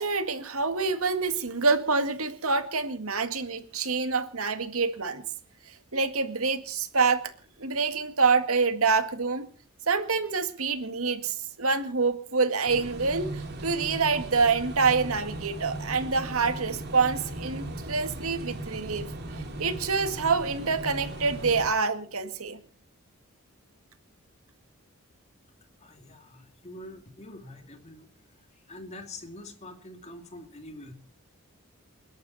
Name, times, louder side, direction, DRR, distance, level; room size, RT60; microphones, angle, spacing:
voice 1, 0.0-5.2 5.7-7.2 7.6-9.5 9.9-19.1 19.6-22.6, right 4 dB, 75° right, 8 dB, 2.0 m, -26 dB
sound 1, 12.7-21.7, right 1 dB, 45° right, 2.9 m, -38 dB
voice 2, 25.8-28.1 28.5-30.9, left 1 dB, 30° left, 5 dB, 2.6 m, -45 dB
29.5 x 11.5 x 4.2 m, 0.42 s
head